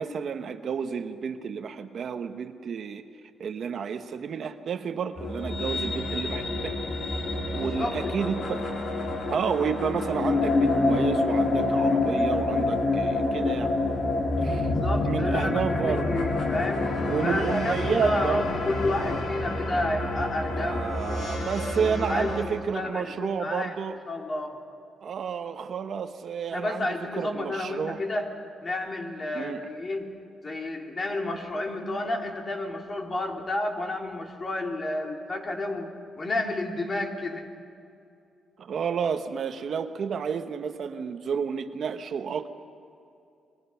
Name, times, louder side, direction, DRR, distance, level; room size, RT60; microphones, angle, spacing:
voice 1, 0.0-3.0 3.4-6.7 7.5-8.6 9.3-13.7 14.4-14.7 15.1-16.1 17.1-18.4 20.5-24.0 25.0-28.0 29.3-29.6 38.6-42.5, right 6 dB, 60° right, 8 dB, 1.1 m, -31 dB
sound 1, 5.2-22.4, left 2 dB, 60° left, 3.6 m, -27 dB
voice 2, 7.5-8.0 14.6-16.9 17.2-21.3 21.8-23.7 24.1-24.6 26.5-28.3 28.6-30.1 30.4-35.9 36.2-37.5, left 2 dB, 35° left, 1 dB, 3.2 m, -31 dB
29.5 x 22.0 x 5.8 m, 2.6 s
cardioid pair, 100°, 0 cm